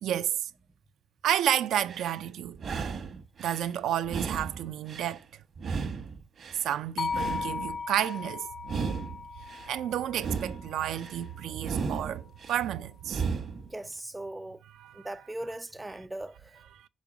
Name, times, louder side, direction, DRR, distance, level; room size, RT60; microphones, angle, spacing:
voice 1, 0.0-0.5 1.2-2.6 3.4-5.2 6.6-8.5 9.7-13.2 14.8-15.1 16.8-16.9, right 11 dB, 80° right, 0.3 m, -31 dB
sound 1, 1.7-2.2 2.5-3.7 4.0-5.2 5.6-6.7 7.0-8.2 8.6-9.7 10.1-11.2 11.6-12.6 13.0-13.7, right 5 dB, 55° right, 1.0 m, -35 dB
sound 2, 7.0-11.2, left 5 dB, 50° left, 0.4 m, -37 dB
voice 2, 13.7-14.6 14.9-16.6, right 1 dB, 15° right, 0.4 m, -39 dB
5.2 x 4.7 x 6.0 m
cardioid pair, 90°, 0 cm